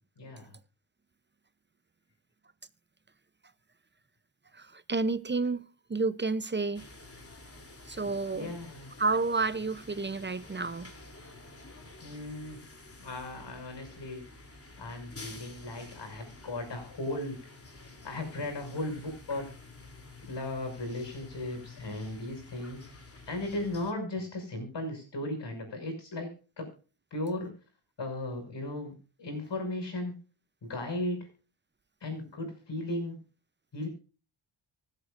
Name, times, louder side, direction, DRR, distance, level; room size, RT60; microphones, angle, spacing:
voice 1, 0.2-0.5 8.3-8.9 12.0-12.7 13.0-14.2 14.8-17.4 18.0-19.5 20.2-23.0 23.3-26.3 26.6-26.7 27.1-27.5 28.0-28.9 29.2-30.2 30.6-31.3 32.0-33.2 33.7-33.9, left 2 dB, 55° left, 6.5 m, -36 dB
voice 2, 4.5-6.9 7.9-8.6 9.0-10.9, right 3 dB, 25° right, 0.7 m, -30 dB
sound 1, 6.7-23.9, left 3 dB, 30° left, 3.2 m, -50 dB
25.0 x 8.3 x 2.6 m
cardioid pair, 90°, 48 cm